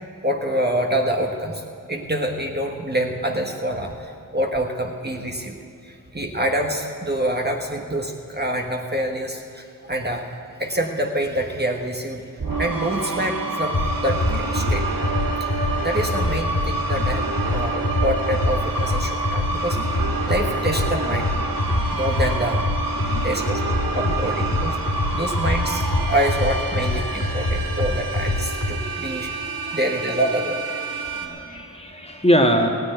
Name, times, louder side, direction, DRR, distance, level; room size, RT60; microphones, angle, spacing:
voice 1, 0.2-1.6 1.9-5.6 5.8-10.3 10.6-12.2 12.6-14.8 15.4-15.5 15.8-21.3 21.9-22.7 23.2-23.6 23.9-29.3 29.7-30.7, right 1 dB, 30° right, 2 dB, 1.5 m, -26 dB
sound 1, 12.4-31.3, right 2 dB, 70° right, 1.6 m, -28 dB
sound 2, 13.7-28.7, left 2 dB, 50° left, 2.6 m, -25 dB
voice 2, 31.0-32.7, equal, 15° left, 2 dB, 1.8 m, -22 dB
15.5 x 9.5 x 9.3 m, 2.3 s
cardioid pair, 40°, 35 cm